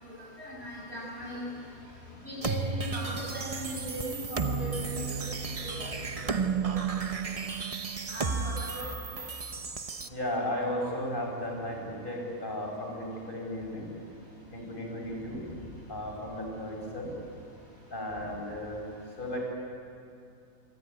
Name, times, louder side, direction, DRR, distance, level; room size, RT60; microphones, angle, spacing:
voice 1, 0.0-1.5 2.2-5.9 6.2-6.3 6.6-6.7 8.1-8.9, equal, 50° right, -5 dB, 6.0 m, -38 dB
sound 1, 2.4-10.1, right 5 dB, 30° right, 0.8 m, -33 dB
voice 2, 10.1-13.9 14.5-17.1 17.9-18.8 19.2-19.4, left 1 dB, 35° left, 0 dB, 6.1 m, -35 dB
25.5 x 23.0 x 9.5 m, 2.5 s
omnidirectional pair, 1.5 m